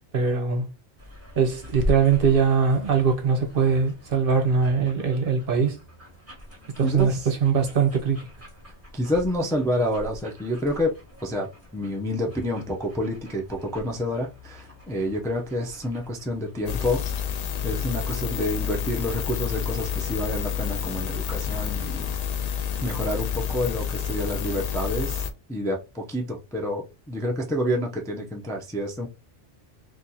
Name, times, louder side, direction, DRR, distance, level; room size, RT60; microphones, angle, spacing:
voice 1, 0.1-0.7 1.4-5.8 6.8-8.2, right 6 dB, 55° right, 0.9 m, -21 dB
sound 1, 1.0-16.8, equal, 10° right, 1.4 m, -40 dB
voice 2, 6.8-7.3 8.9-10.9 11.2-17.0 17.6-22.1 22.8-29.1, left 1 dB, 5° left, 0.5 m, -28 dB
sound 2, 16.7-25.3, left 8 dB, 80° left, 0.3 m, -29 dB
2.9 x 2.5 x 3.8 m
omnidirectional pair, 1.2 m